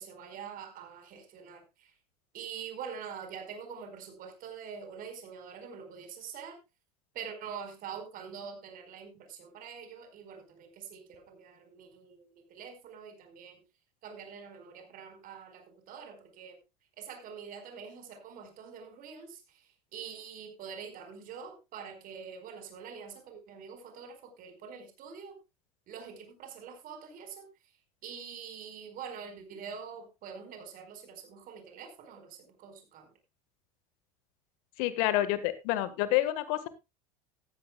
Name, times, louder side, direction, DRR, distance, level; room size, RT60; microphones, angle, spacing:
voice 1, 0.0-1.9 2.3-6.6 7.1-13.6 14.0-16.6 17.0-19.6 19.9-25.4 25.9-27.5 28.0-33.1, right 7 dB, 45° right, 7 dB, 4.8 m, -45 dB
voice 2, 34.8-36.7, left 14 dB, 60° left, 14 dB, 1.6 m, -28 dB
15.5 x 14.0 x 2.3 m, 0.25 s
hypercardioid pair, 80°, 19 cm